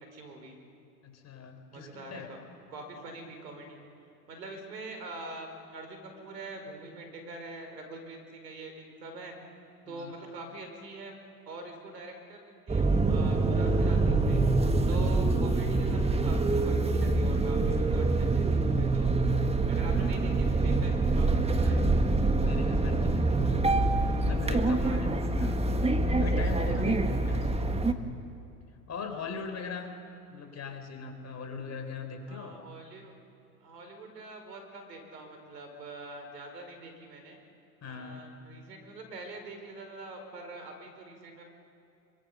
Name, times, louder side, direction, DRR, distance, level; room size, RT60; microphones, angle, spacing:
voice 1, 0.1-0.6 1.7-2.3 2.7-3.8 4.3-9.4 9.9-11.2 11.5-14.4 14.9-19.1 19.7-21.9 24.8-25.2 26.7-26.9 29.1-29.3 32.3-33.1 33.6-37.4 37.8-41.4, right 2 dB, 85° right, 5 dB, 5.1 m, -44 dB
voice 2, 1.0-2.3 9.8-10.1 22.4-23.8 24.2-25.1 25.4-25.7 26.2-27.0 27.3-27.7 28.9-30.0 30.3-32.5 37.8-38.2, left 5 dB, 35° left, 5 dB, 4.4 m, -40 dB
sound 1, 12.7-27.9, right 2 dB, 15° right, 1.7 m, -25 dB
26.0 x 24.0 x 6.9 m, 2.7 s
hypercardioid pair, 85°, 48 cm